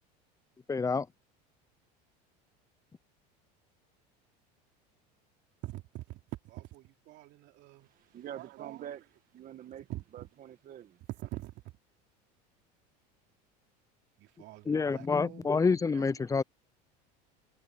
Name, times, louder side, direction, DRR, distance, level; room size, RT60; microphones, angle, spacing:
voice 1, 0.7-1.1 14.7-16.4, left 4 dB, 15° left, 0.6 m, -27 dB
voice 2, 5.6-7.9 8.3-8.9 9.9-10.0 11.1-11.5 14.2-16.1, right 17 dB, 60° right, 3.4 m, -44 dB
voice 3, 7.8-9.0 9.3-9.9 10.1-11.0, right 10 dB, 40° right, 1.7 m, -45 dB
supercardioid pair, 95°, 21 cm